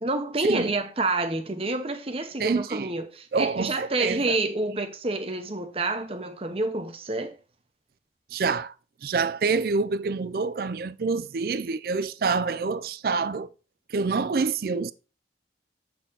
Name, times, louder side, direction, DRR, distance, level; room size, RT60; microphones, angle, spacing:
voice 1, 0.0-7.4, right 2 dB, 30° right, 0.9 m, -28 dB
voice 2, 2.4-2.9 3.3-4.4 8.3-8.7 9.0-13.5 13.9-14.9, right 4 dB, 55° right, 0.4 m, -27 dB
7.3 x 4.4 x 3.9 m
head